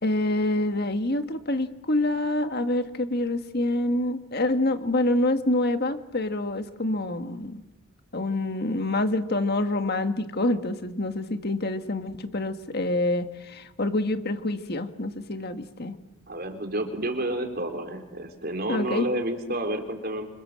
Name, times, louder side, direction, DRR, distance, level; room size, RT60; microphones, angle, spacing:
voice 1, 0.0-7.6 8.1-16.0 18.7-19.1, left 2 dB, 45° left, 8 dB, 1.7 m, -26 dB
voice 2, 16.3-20.3, right 1 dB, 45° right, 5 dB, 3.9 m, -30 dB
28.5 x 26.0 x 7.6 m, 1.0 s
head